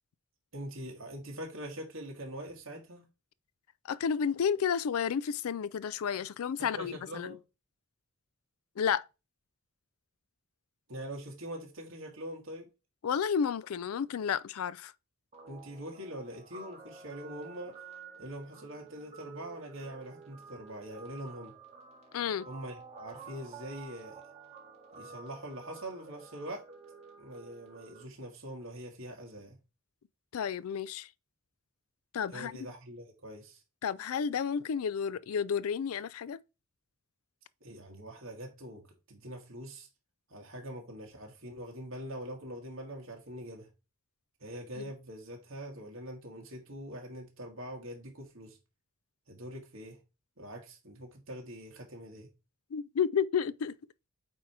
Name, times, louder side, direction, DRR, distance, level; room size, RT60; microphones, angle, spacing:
voice 1, 0.5-3.1 6.6-7.4 10.9-12.7 15.5-17.7 18.2-21.5 22.5-24.2 25.0-26.6 27.2-29.6 32.3-33.6 37.6-38.8 39.1-39.9 40.3-43.7 44.4-48.6 49.3-50.0 50.4-52.3, right 1 dB, 70° right, 1.6 m, -43 dB
voice 2, 3.8-7.4 8.8-9.1 13.0-14.9 22.1-22.5 30.3-31.1 32.1-32.6 33.8-36.4 44.8-44.9 52.7-53.8, left 7 dB, 80° left, 0.4 m, -31 dB
Guitar, 15.3-28.0, right 5 dB, 30° right, 1.7 m, -51 dB
8.6 x 2.9 x 4.7 m
head